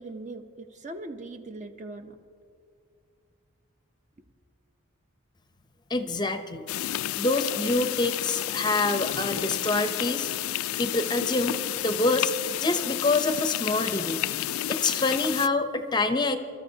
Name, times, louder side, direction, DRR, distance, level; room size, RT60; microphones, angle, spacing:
voice 1, 0.0-2.1, right 2 dB, 35° right, 7 dB, 0.7 m, -40 dB
voice 2, 5.9-6.6 7.2-10.3 10.8-12.3 12.6-14.2 14.7-16.4, left 3 dB, 20° left, 8 dB, 0.6 m, -26 dB
sound 1, 6.7-15.5, left 13 dB, 80° left, 0.3 m, -31 dB
29.0 x 13.0 x 2.7 m, 2.3 s
head